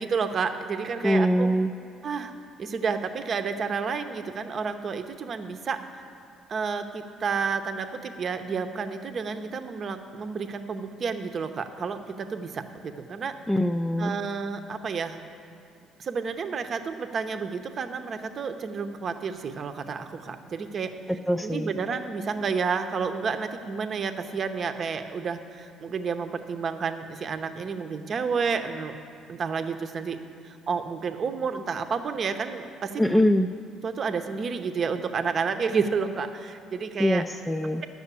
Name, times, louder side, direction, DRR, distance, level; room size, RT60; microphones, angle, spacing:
voice 1, 0.0-1.5 2.0-2.3 2.6-5.8 6.5-13.3 14.0-15.2 16.0-20.9 21.4-28.9 29.3-30.2 30.4-33.3 33.8-37.2, right 5 dB, 45° right, 8 dB, 0.8 m, -30 dB
voice 2, 1.0-1.7 13.5-14.1 21.3-21.7 33.0-33.5 37.0-37.8, equal, 5° left, 5 dB, 0.4 m, -23 dB
11.5 x 6.4 x 8.3 m, 2.5 s
supercardioid pair, 85°, 0 cm